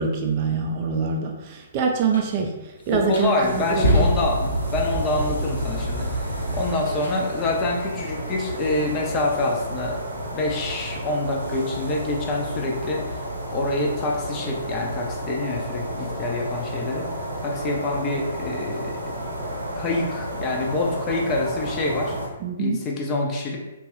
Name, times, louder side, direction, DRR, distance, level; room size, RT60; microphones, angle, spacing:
voice 1, 0.0-3.8 22.4-22.8, right 5 dB, 35° right, 2 dB, 0.3 m, -25 dB
Close Up Turning On Gas Stove Top Then Turning Off, 2.1-2.3 2.9-7.2, right 1 dB, 70° left, 0.9 m, -26 dB
voice 2, 2.9-10.0 10.3-13.0 13.5-17.1 17.4-18.9 19.8-22.2 22.6-23.6, left 2 dB, 25° left, -1 dB, 0.5 m, -26 dB
sound 1, 3.4-22.3, equal, 70° right, 0.6 m, -32 dB
2.9 x 2.3 x 2.9 m, 1.0 s
figure-of-eight pair, 125°, 0 cm